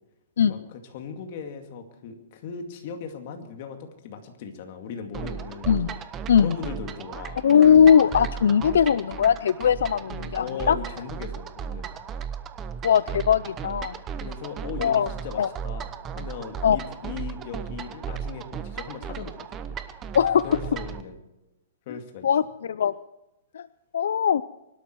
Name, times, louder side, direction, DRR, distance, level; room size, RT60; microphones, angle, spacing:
voice 1, 0.5-5.7 6.4-7.4 10.3-12.0 14.2-19.8 20.4-21.2 21.9-22.3, left 6 dB, 45° left, 5 dB, 2.3 m, -38 dB
sound 1, 5.1-21.0, right 7 dB, 20° right, 0.8 m, -36 dB
voice 2, 5.7-6.0 6.3-6.6 7.4-10.8 12.8-14.0 14.8-15.1 15.4-15.5 16.6-16.8 20.1-20.5 21.9-22.0 22.2-22.9 23.5-23.7 23.9-24.4, left 8 dB, 80° left, 16 dB, 0.4 m, -20 dB
23.5 x 12.5 x 4.6 m, 0.96 s
hypercardioid pair, 160°, 0 cm